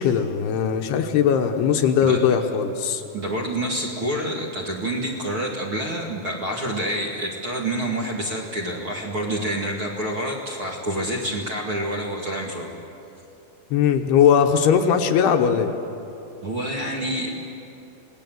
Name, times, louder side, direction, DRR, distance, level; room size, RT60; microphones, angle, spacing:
voice 1, 0.0-3.0 13.7-15.8, left 7 dB, 75° left, 5 dB, 2.9 m, -19 dB
voice 2, 3.1-12.7 16.4-17.3, right 1 dB, 40° right, -2 dB, 2.2 m, -27 dB
27.5 x 19.0 x 7.8 m, 2.9 s
omnidirectional pair, 5.0 m